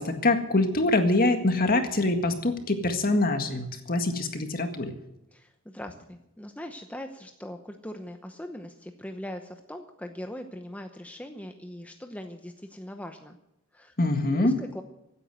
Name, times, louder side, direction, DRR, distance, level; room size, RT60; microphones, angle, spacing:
voice 1, 0.0-4.9 14.0-14.5, left 2 dB, 45° left, 6 dB, 1.9 m, -24 dB
voice 2, 5.3-13.4 13.7-13.9 14.3-14.8, left 1 dB, 5° left, 5 dB, 0.8 m, -40 dB
16.0 x 9.3 x 7.9 m, 0.87 s
head